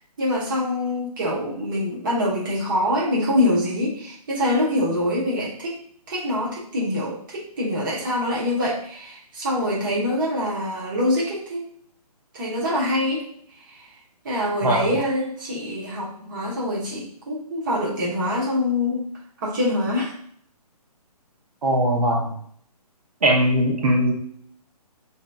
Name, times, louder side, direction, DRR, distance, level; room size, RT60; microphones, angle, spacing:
voice 1, 0.2-5.8 6.1-11.6 12.3-13.2 13.7-13.8 14.2-19.0 19.4-20.2, left 1 dB, 30° right, -5 dB, 1.0 m, -25 dB
voice 2, 14.6-15.0 21.6-22.3 23.2-24.1, right 1 dB, 70° right, 0 dB, 0.9 m, -20 dB
4.5 x 2.8 x 2.3 m, 0.62 s
hypercardioid pair, 170°, 20 cm